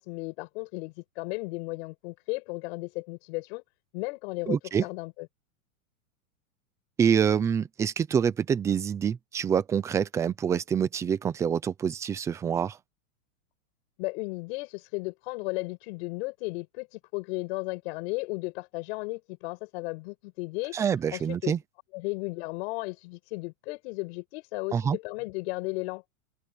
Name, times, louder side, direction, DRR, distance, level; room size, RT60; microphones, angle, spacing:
voice 1, 0.0-3.6 3.9-5.3 14.0-20.8 21.1-21.5 21.9-26.0, left 26 dB, 45° left, 7.5 m, -35 dB
voice 2, 4.5-4.8 7.0-12.8 20.7-21.6 24.7-25.0, right 7 dB, 5° right, 0.4 m, -26 dB
supercardioid pair, 155°, 42 cm